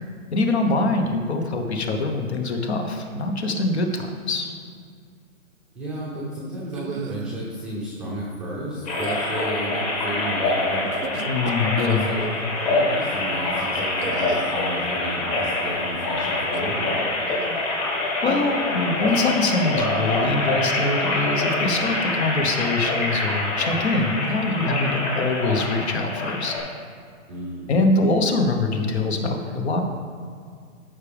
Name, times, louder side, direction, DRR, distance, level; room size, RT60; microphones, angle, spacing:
voice 1, 0.3-4.5 11.3-12.1 18.2-26.5 27.7-29.8, left 3 dB, 55° left, 5 dB, 1.2 m, -23 dB
voice 2, 5.7-11.1 12.0-12.3 12.6-17.0 27.3-27.8, right 1 dB, ahead, -9 dB, 0.7 m, -33 dB
sound 1, 6.7-7.4 8.8-9.5 10.7-12.5 14.0-14.7 16.5-17.0 17.3-17.7 19.1-19.5, right 7 dB, 80° right, 0.7 m, -36 dB
sound 2, 8.9-26.6, left 2 dB, 30° left, 1.9 m, -25 dB
13.5 x 5.0 x 3.5 m, 2.1 s
hypercardioid pair, 160°, 40 cm